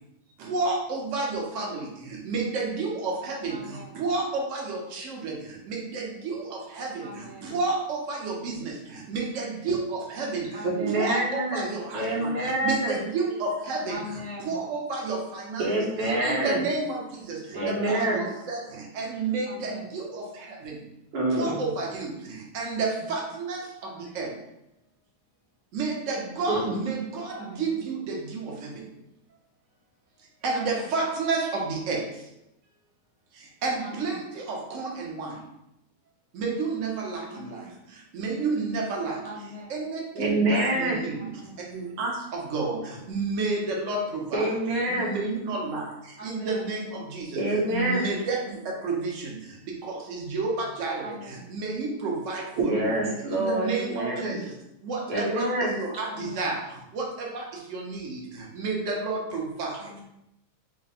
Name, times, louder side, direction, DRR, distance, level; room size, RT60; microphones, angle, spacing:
voice 1, 0.4-10.6 10.9-14.0 14.4-15.7 16.0-20.9 21.3-24.3 25.7-28.9 30.4-32.3 33.3-35.5 36.3-39.2 39.7-41.3 41.7-44.4 44.9-47.4 47.7-52.9 53.3-54.5 54.8-60.0, right 3 dB, 50° right, -1 dB, 0.9 m, -31 dB
voice 2, 3.5-4.0 7.0-7.5 10.5-11.2 13.9-14.6 17.5-18.1 19.4-19.9 23.8-24.2 27.3-27.7 30.5-30.9 33.8-34.2 37.3-37.7 39.2-39.7 41.1-41.6 46.2-46.7 47.7-48.2 51.0-51.5 56.0-56.5 59.8-60.0, left 1 dB, 65° left, -9 dB, 0.3 m, -41 dB
voice 3, 10.6-13.0 15.6-16.6 17.5-18.2 21.1-21.6 26.5-26.7 40.1-41.0 44.3-45.1 47.4-48.1 52.6-54.4 55.1-55.7, right 1 dB, 75° right, -5 dB, 2.1 m, -26 dB
5.0 x 2.2 x 4.2 m, 0.83 s
omnidirectional pair, 2.3 m